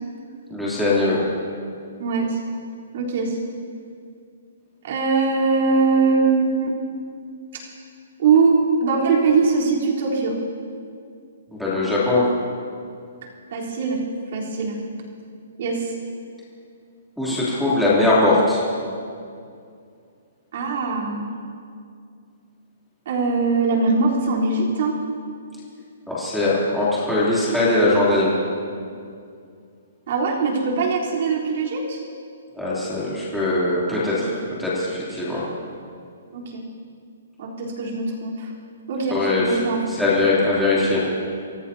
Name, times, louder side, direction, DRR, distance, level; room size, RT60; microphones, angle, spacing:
voice 1, 0.5-1.2 11.5-12.2 17.2-18.6 26.1-28.3 32.5-34.3 34.6-35.4 39.1-39.6 39.9-41.0, left 2 dB, ahead, -10 dB, 3.1 m, -20 dB
voice 2, 2.0-2.4 2.9-3.4 4.8-6.7 8.2-8.5 8.8-10.4 13.5-14.0 14.3-14.8 15.6-15.9 20.5-21.2 23.1-24.9 30.1-32.0 34.2-34.3 36.3-36.6 37.4-38.5 38.9-39.8, right 4 dB, 45° right, -4 dB, 3.8 m, -21 dB
26.0 x 17.0 x 2.9 m, 2.3 s
hypercardioid pair, 170°, 0 cm